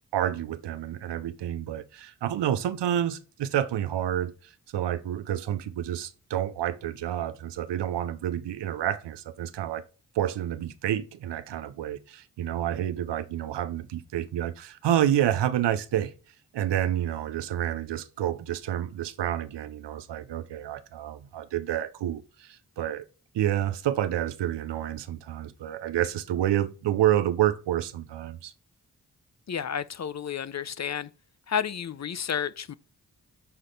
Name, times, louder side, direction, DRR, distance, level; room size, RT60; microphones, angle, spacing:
voice 1, 0.1-4.3 4.7-9.8 10.2-16.1 16.5-23.0 23.3-28.5, right 11 dB, 90° right, 0.6 m, -29 dB
voice 2, 29.5-31.1 31.5-32.7, left 8 dB, 40° left, 0.5 m, -31 dB
5.7 x 4.1 x 5.1 m
cardioid pair, 40°, 41 cm